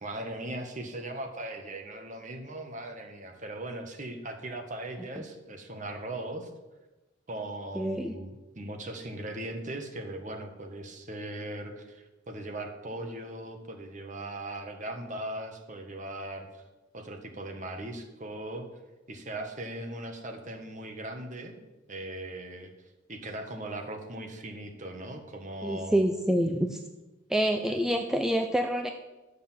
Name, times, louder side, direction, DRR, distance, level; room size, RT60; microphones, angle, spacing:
voice 1, 0.0-6.5 7.3-16.6 16.9-18.7 19.1-21.5 21.9-22.7 23.1-26.0 27.7-27.8, right 1 dB, 40° right, 4 dB, 1.5 m, -39 dB
voice 2, 7.7-8.1 25.6-26.8 27.3-28.9, right 1 dB, 5° right, 4 dB, 0.5 m, -27 dB
12.0 x 6.7 x 7.5 m, 1.1 s
head